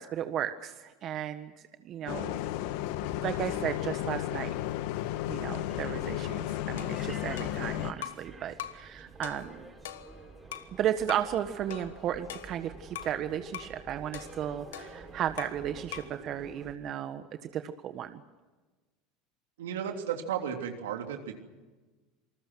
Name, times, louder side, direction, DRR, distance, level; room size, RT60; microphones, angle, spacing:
voice 1, 0.0-1.5 1.8-2.4 3.2-4.5 5.3-9.6 10.7-17.2 17.5-18.2, right 10 dB, 50° right, 9 dB, 1.4 m, -34 dB
Bus, 2.1-7.9, left 13 dB, 70° left, 1.3 m, -33 dB
sound 1, 5.5-16.8, right 3 dB, 15° right, 5.9 m, -49 dB
sound 2, 6.8-8.3 8.6-8.9 9.2-10.8 11.1-11.3 11.7-13.2 13.5-13.8 14.1-15.7 15.9-16.2, left 11 dB, 90° left, 1.3 m, -43 dB
voice 2, 19.6-21.4, right 8 dB, 90° right, 4 dB, 3.3 m, -34 dB
27.5 x 20.5 x 6.3 m, 1.2 s
supercardioid pair, 100°, 0 cm